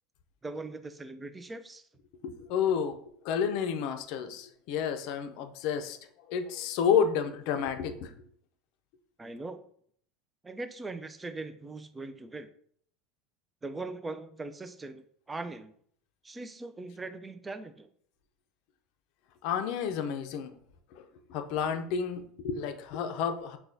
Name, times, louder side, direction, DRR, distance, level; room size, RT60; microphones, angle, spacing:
voice 1, 0.4-1.9 9.2-9.6 10.4-12.5 13.6-15.7 16.2-17.9, right 3 dB, 15° right, 10 dB, 0.3 m, -40 dB
voice 2, 2.2-6.0 6.3-8.1 19.4-20.6 20.9-23.6, left 7 dB, 60° left, 8 dB, 0.5 m, -30 dB
6.1 x 2.2 x 2.6 m, 0.62 s
supercardioid pair, 135°, 0 cm